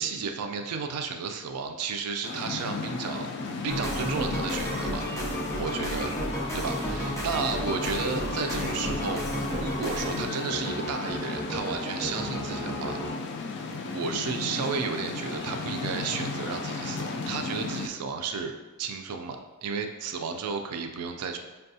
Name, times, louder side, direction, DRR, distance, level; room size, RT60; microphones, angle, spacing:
voice 1, 0.0-3.3 3.6-5.1 5.6-6.1 6.5-13.0 13.9-21.4, right 5 dB, 85° right, 5 dB, 0.4 m, -33 dB
sound 1, 2.2-17.9, left 3 dB, 50° left, 0.3 m, -35 dB
sound 2, 3.7-13.1, equal, 15° left, 0.6 m, -32 dB
5.3 x 2.2 x 2.6 m, 1.2 s
head